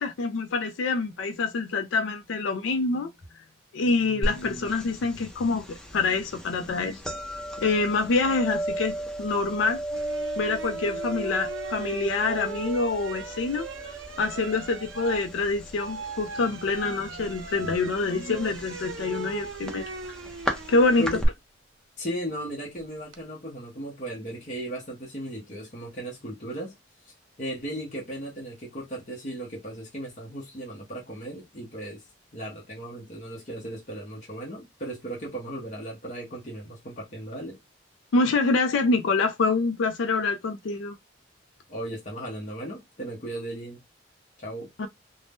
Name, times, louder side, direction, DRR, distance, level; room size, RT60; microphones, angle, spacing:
voice 1, 0.0-3.1 3.7-7.0 7.6-9.8 10.4-13.7 14.2-19.9 20.7-21.1 38.1-41.0 44.8-44.9, left 3 dB, 80° left, 0.4 m, -26 dB
sound 1, 4.2-21.3, right 1 dB, 5° left, 0.5 m, -36 dB
sound 2, 9.9-21.1 22.8-23.2, right 5 dB, 90° right, 0.5 m, -39 dB
voice 2, 22.0-26.7 27.1-32.0 32.3-37.6 41.7-43.8 44.4-44.7, right 1 dB, 40° left, 0.8 m, -36 dB
2.6 x 2.1 x 3.4 m
head